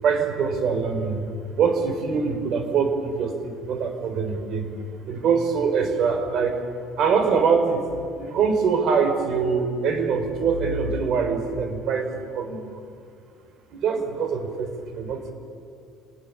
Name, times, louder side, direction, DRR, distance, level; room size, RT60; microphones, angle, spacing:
voice 1, 0.0-1.2 1.6-4.7 5.1-6.6 7.0-7.9 8.2-12.7 13.7-15.3, right 5 dB, 60° right, 7 dB, 4.8 m, -24 dB
29.0 x 20.0 x 8.4 m, 2.3 s
supercardioid pair, 90°, 0 cm